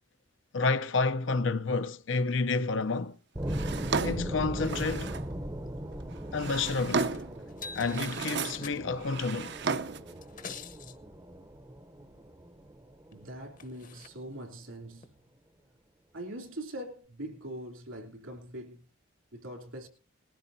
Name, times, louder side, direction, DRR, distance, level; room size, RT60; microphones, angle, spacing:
voice 1, 0.5-3.2 4.0-5.1 6.3-7.1 7.8-9.6, left 4 dB, 65° left, 0.6 m, -29 dB
sound 1, 3.3-14.1, right 1 dB, 15° right, 0.7 m, -39 dB
Drawer open or close, 3.5-5.3 6.1-7.4 7.8-8.7 9.0-10.1, right 5 dB, 55° right, 0.7 m, -34 dB
sound 2, 7.0-7.2 7.5-9.1 10.1-11.0 13.1-13.2 13.6-14.1 15.0-15.1, left 5 dB, 40° left, 1.0 m, -46 dB
voice 2, 13.1-15.1 16.1-18.8 19.3-19.9, right 1 dB, 80° right, 3.1 m, -42 dB
20.0 x 14.0 x 2.7 m
head